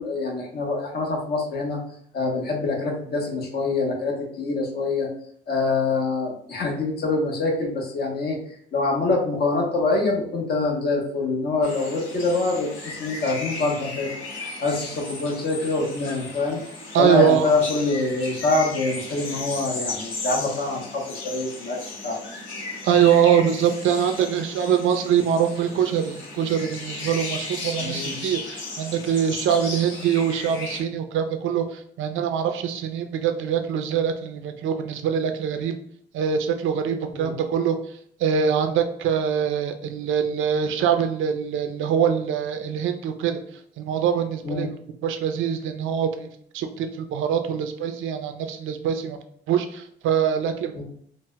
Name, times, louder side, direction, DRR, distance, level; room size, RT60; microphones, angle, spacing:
voice 1, 0.0-1.8 2.1-5.1 5.5-8.4 8.7-14.1 14.4-16.6 17.0-21.8 22.0-22.2 27.8-28.2 37.1-37.3 44.4-44.6 50.7-50.8, left 3 dB, 55° left, 0 dB, 1.0 m, -25 dB
sound 1, 11.6-30.8, left 3 dB, 75° left, 1.3 m, -35 dB
voice 2, 16.9-17.5 22.8-35.7 36.1-37.8 38.2-43.4 43.8-44.7 45.0-46.3 46.5-49.2 49.5-50.8, right 8 dB, 80° right, 7 dB, 0.4 m, -23 dB
3.9 x 2.1 x 2.2 m, 0.64 s
cardioid pair, 90°, 20 cm